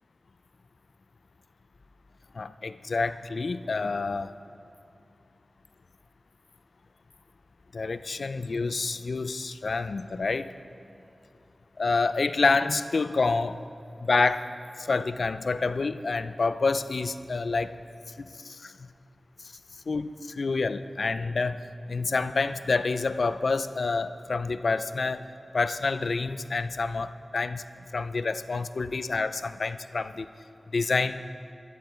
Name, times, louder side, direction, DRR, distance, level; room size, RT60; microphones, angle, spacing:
voice 1, 2.3-4.4 7.7-10.5 11.8-13.6 14.0-14.5 14.8-17.8 18.2-18.9 19.4-19.6 19.9-25.3 25.5-27.6 27.9-30.3 30.7-31.2, left 4 dB, 75° left, 12 dB, 0.4 m, -28 dB
15.5 x 11.5 x 4.4 m, 2.6 s
wide cardioid pair, 60°, 0 cm